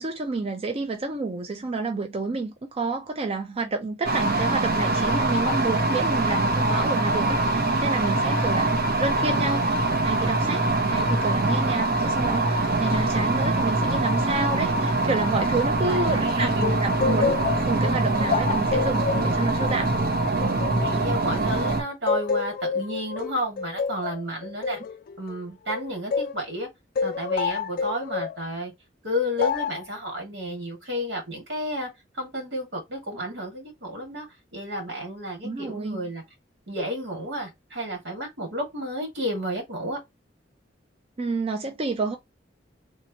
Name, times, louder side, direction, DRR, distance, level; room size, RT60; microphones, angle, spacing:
voice 1, 0.0-17.3 17.7-19.9 35.4-36.0 41.2-42.2, right 3 dB, 35° right, 0.5 m, -29 dB
sound 1, 4.0-21.8, right 2 dB, 55° right, 0.8 m, -23 dB
voice 2, 15.8-16.7 20.8-24.8 25.2-26.7 27.0-28.7 29.0-31.9 32.1-34.3 34.5-36.2 36.7-40.0, equal, 80° right, 1.8 m, -31 dB
sound 2, 16.6-21.6 22.1-26.4 27.0-28.4 29.4-29.8, left 5 dB, 50° left, 0.3 m, -29 dB
3.3 x 2.8 x 2.8 m
head